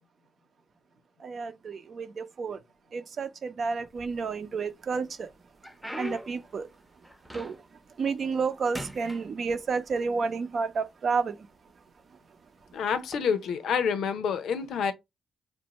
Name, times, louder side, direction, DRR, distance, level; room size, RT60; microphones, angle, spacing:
voice 1, 1.2-2.6 2.9-5.3 6.0-6.7 7.3-7.6 8.0-11.4, right 5 dB, 55° right, 0.6 m, -30 dB
sound 1, 3.9-4.6 5.1-7.8 8.2-8.5 8.7-10.0 10.8-10.9 11.6-11.8 13.0-13.2, left 1 dB, ahead, 0.7 m, -42 dB
voice 2, 12.7-14.9, left 6 dB, 80° left, 0.7 m, -28 dB
4.3 x 2.6 x 2.9 m
cardioid pair, 75°, 0 cm